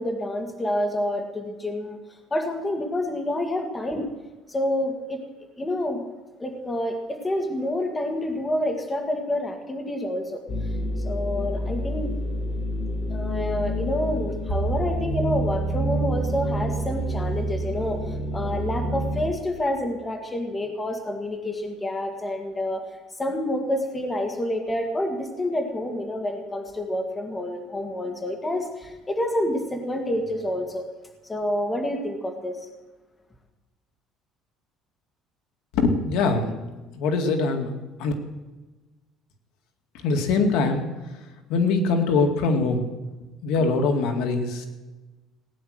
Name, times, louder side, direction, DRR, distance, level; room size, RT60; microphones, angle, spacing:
voice 1, 0.0-2.0 2.3-4.1 4.5-5.2 5.6-6.0 6.4-10.4 11.0-12.1 13.1-22.8 23.2-30.8 31.2-32.6, left 1 dB, 15° left, 4 dB, 1.9 m, -28 dB
sound 1, 10.5-19.3, right 1 dB, 45° left, 2.3 m, -28 dB
voice 2, 35.7-37.7 38.0-38.1 39.9-40.9 41.5-42.9 43.4-44.7, left 3 dB, 70° left, 4 dB, 2.1 m, -23 dB
18.5 x 10.0 x 6.5 m, 1.2 s
cardioid pair, 150°, 0 cm